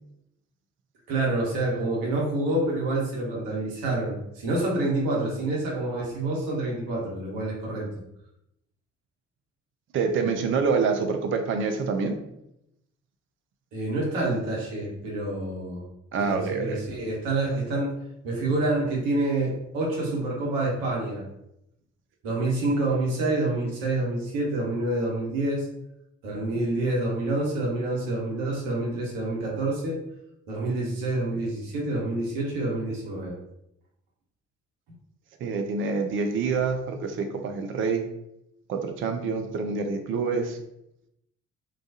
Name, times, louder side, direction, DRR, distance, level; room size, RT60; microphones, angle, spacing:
voice 1, 1.1-7.9 13.7-15.9 16.2-17.9 18.2-21.2 22.2-25.7 26.2-30.0 30.5-33.3, right 2 dB, 65° right, -3 dB, 0.9 m, -27 dB
voice 2, 9.9-12.2 16.1-16.8 35.4-38.1 38.7-40.6, right 5 dB, 35° right, 6 dB, 0.4 m, -26 dB
2.3 x 2.2 x 2.6 m, 0.82 s
figure-of-eight pair, 40°, 38 cm